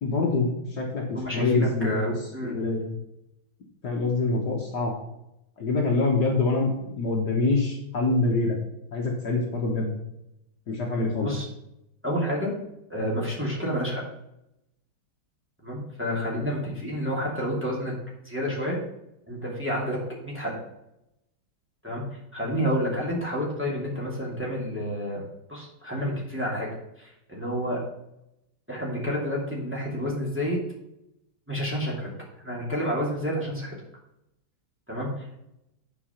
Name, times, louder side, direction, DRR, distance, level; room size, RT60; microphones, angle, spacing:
voice 1, 0.0-1.0 1.3-2.8 3.8-4.9 5.6-8.6 8.9-9.9 10.7-11.3, left 3 dB, 55° left, -1 dB, 1.8 m, -25 dB
voice 2, 1.1-2.9 11.2-11.5 12.0-12.5 12.9-14.1 15.6-17.9 18.2-18.8 19.3-20.5 21.8-25.2 25.5-26.7 27.0-27.8 28.7-30.6 31.5-32.1 32.4-33.7 34.9-35.4, equal, 5° right, -4 dB, 2.5 m, -29 dB
9.6 x 5.0 x 5.7 m, 0.85 s
omnidirectional pair, 2.2 m